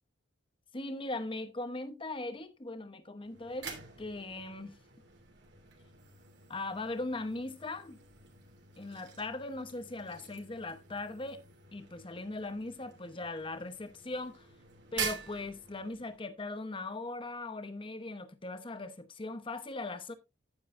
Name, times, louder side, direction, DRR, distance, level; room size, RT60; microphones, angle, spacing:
voice 1, 0.7-4.7 6.5-8.0 8.8-11.4 11.7-14.5 14.9-20.1, left 2 dB, 25° left, 0.9 m, -39 dB
sound 1, 3.2-16.3, right 6 dB, 60° right, 3.0 m, -46 dB
10.0 x 9.6 x 2.6 m
head